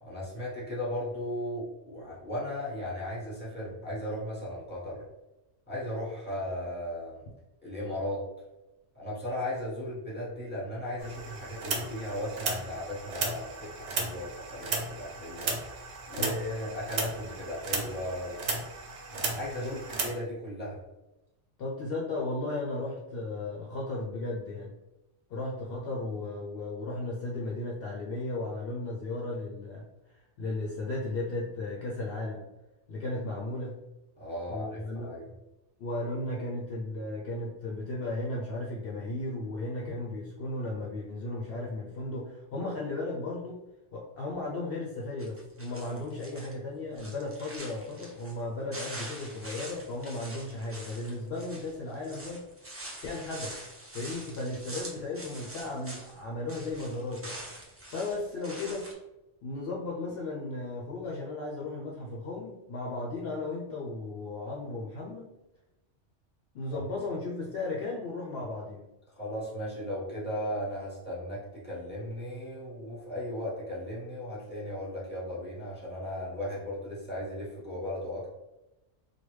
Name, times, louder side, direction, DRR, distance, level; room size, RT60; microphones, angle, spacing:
voice 1, 0.0-5.0 5.7-7.2 7.6-8.2 8.9-15.6 16.1-18.4 19.1-20.8 34.2-35.3 66.7-66.9 69.1-78.3, left 1 dB, 10° left, -7 dB, 1.1 m, -36 dB
sound 1, 11.0-20.1, right 3 dB, 85° right, 1.0 m, -35 dB
voice 2, 21.6-24.7 25.3-32.4 32.9-33.8 34.5-35.2 35.8-43.6 43.9-52.5 53.0-53.6 53.9-57.4 57.9-58.9 59.4-65.3 66.5-68.8, left 2 dB, 60° left, -3 dB, 0.7 m, -35 dB
sound 2, 45.2-46.5 46.9-48.4 48.7-56.2 56.5-58.9, right 1 dB, 20° right, 0.3 m, -44 dB
3.2 x 2.2 x 3.1 m, 0.97 s
omnidirectional pair, 1.2 m